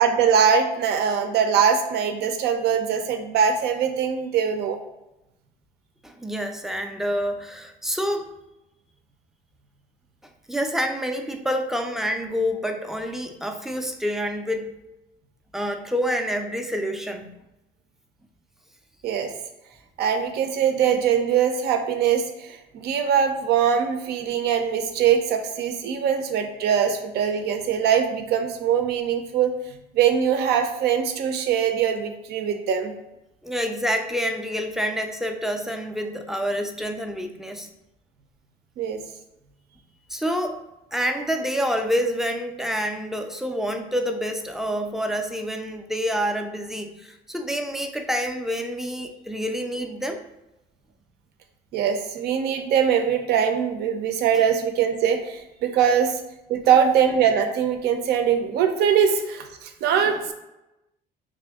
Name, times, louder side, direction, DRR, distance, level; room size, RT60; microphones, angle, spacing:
voice 1, 0.0-4.8 19.0-19.3 20.0-29.5 29.9-32.9 38.8-39.0 51.7-56.2 56.5-60.3, right 7 dB, 75° right, 6 dB, 0.6 m, -22 dB
voice 2, 6.0-8.3 10.5-14.7 15.5-17.3 33.4-37.7 40.1-40.6 40.9-50.2 60.0-60.1, equal, ahead, 4 dB, 0.4 m, -27 dB
3.6 x 2.6 x 3.5 m, 0.94 s
cardioid pair, 110°, 17 cm